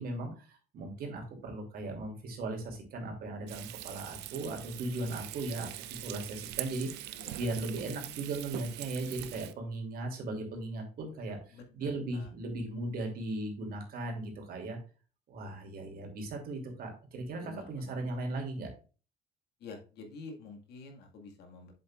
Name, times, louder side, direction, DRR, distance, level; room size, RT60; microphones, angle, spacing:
voice 1, 0.0-14.8 15.3-18.7, right 2 dB, 60° right, 2 dB, 2.8 m, -38 dB
Frying (food), 3.5-9.5, right 14 dB, 85° right, 0.6 m, -43 dB
voice 2, 7.2-7.5 11.5-12.3 17.4-17.9 19.6-21.7, left 3 dB, 75° left, 3 dB, 1.9 m, -48 dB
7.6 x 7.3 x 2.4 m, 0.36 s
cardioid pair, 110°, 17 cm